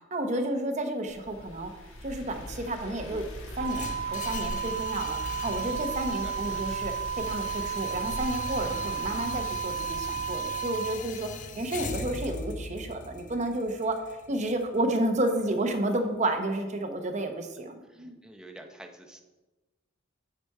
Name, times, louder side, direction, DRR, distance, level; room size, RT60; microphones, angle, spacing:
voice 1, 0.1-1.7 2.0-3.2 3.6-11.3 11.6-14.0 14.3-18.1, right 1 dB, 35° right, 5 dB, 0.8 m, -31 dB
sound 1, 1.1-10.5, left 1 dB, 80° left, 1.3 m, -41 dB
sound 2, 3.6-15.7, left 4 dB, 40° left, 0.6 m, -41 dB
sound 3, 3.6-11.0, right 8 dB, 70° right, 0.4 m, -33 dB
voice 2, 6.2-6.6 17.9-19.2, right 1 dB, 5° right, 4 dB, 0.7 m, -48 dB
8.3 x 5.0 x 4.7 m, 1.1 s
head